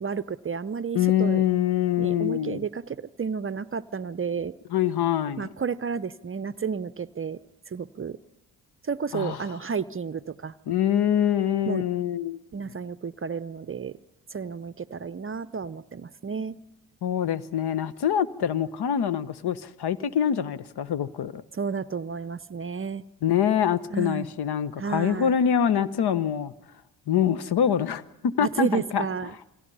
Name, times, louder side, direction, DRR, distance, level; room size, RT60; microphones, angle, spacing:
voice 1, 0.0-1.4 2.0-4.5 5.4-7.4 7.7-8.2 8.8-10.5 11.7-11.8 12.5-14.0 14.3-16.6 21.5-23.0 23.9-24.3 24.8-25.4 28.4-29.3, right 6 dB, 25° right, 17 dB, 0.7 m, -31 dB
voice 2, 0.9-2.6 4.7-5.5 9.1-9.4 10.7-12.4 17.0-21.4 23.2-26.5 27.1-29.0, left 9 dB, 50° left, 17 dB, 1.1 m, -25 dB
28.5 x 21.0 x 5.5 m, 0.95 s
hypercardioid pair, 40°, 48 cm